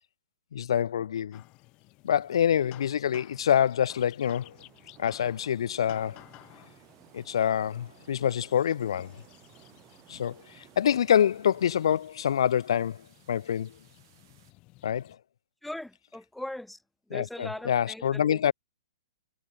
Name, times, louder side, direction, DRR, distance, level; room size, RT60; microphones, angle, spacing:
voice 1, 0.5-1.4 2.0-4.6 5.0-6.2 7.1-9.2 10.1-13.8 14.8-15.2 17.1-18.5, left 9 dB, 70° left, 0.5 m, -26 dB
sound 1, 1.3-15.2, left 22 dB, 35° left, 4.5 m, -56 dB
sound 2, 4.2-14.5, right 15 dB, 50° right, 4.1 m, -65 dB
sound 3, 4.4-12.0, right 15 dB, 30° right, 1.8 m, -58 dB
voice 2, 15.6-16.8 17.1-18.5, left 1 dB, 5° left, 0.4 m, -39 dB
hypercardioid pair, 125°, 3 cm